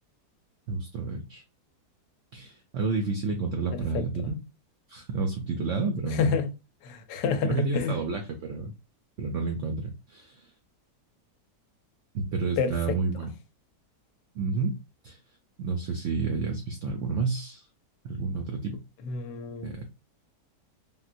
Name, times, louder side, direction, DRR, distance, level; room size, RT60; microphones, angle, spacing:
voice 1, 0.7-1.4 2.3-4.4 4.9-6.4 7.4-8.7 9.2-10.4 12.1-13.3 14.4-14.7 15.0-15.2 15.6-17.7 18.0-18.8 19.6-19.9, right 4 dB, 85° right, 0.6 m, -30 dB
voice 2, 6.2-6.5 6.8-8.0 12.6-13.0 19.0-19.7, left 5 dB, 90° left, 1.2 m, -28 dB
3.8 x 2.1 x 2.5 m
omnidirectional pair, 1.8 m